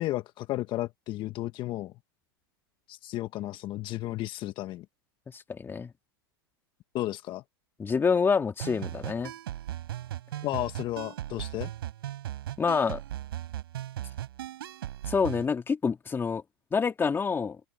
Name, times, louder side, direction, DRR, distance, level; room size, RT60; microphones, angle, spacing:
voice 1, 0.0-1.9 2.9-4.8 6.9-7.4 10.4-11.7, left 16 dB, 40° left, 1.3 m, -33 dB
voice 2, 5.3-5.9 7.8-9.3 12.6-13.0 15.1-16.4 16.7-17.6, left 5 dB, 15° left, 2.1 m, -27 dB
sound 1, 8.6-15.5, right 13 dB, 75° right, 5.5 m, -37 dB
hypercardioid pair, 110°, 12 cm